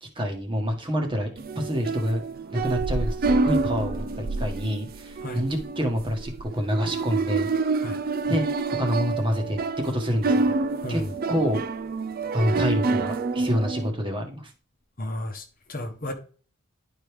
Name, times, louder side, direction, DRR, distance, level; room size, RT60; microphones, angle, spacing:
voice 1, 0.0-1.3 1.5-2.2 2.5-7.5 8.3-8.4 8.7-9.6 9.8-10.5 10.9-11.0 11.3-11.6 12.3-14.5, equal, 25° right, 1.2 m, -27 dB
sound 1, 1.4-13.9, right 3 dB, 45° right, 0.5 m, -27 dB
voice 2, 10.8-11.1 15.0-16.1, left 1 dB, 40° left, 1.0 m, -33 dB
10.5 x 4.7 x 3.4 m
head